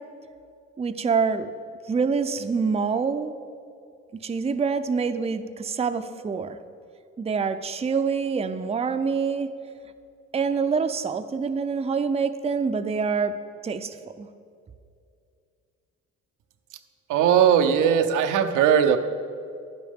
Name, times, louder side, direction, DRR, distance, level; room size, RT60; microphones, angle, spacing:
voice 1, 0.8-1.5 1.9-3.4 4.1-6.6 7.2-9.5 10.3-13.4 13.6-14.3, right 5 dB, 20° right, 9 dB, 0.5 m, -26 dB
voice 2, 17.1-19.0, right 8 dB, 90° right, 7 dB, 0.6 m, -19 dB
11.0 x 10.5 x 3.6 m, 2.4 s
cardioid pair, 90°, 30 cm